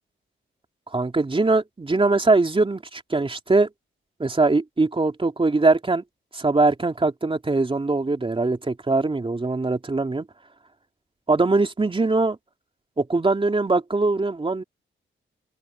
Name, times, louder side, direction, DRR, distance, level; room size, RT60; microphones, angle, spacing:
voice 1, 0.9-3.7 4.2-6.0 6.3-10.3 11.3-12.4 13.0-14.6, right 3 dB, 25° right, 2.8 m, -22 dB
cardioid pair, 90°, 21 cm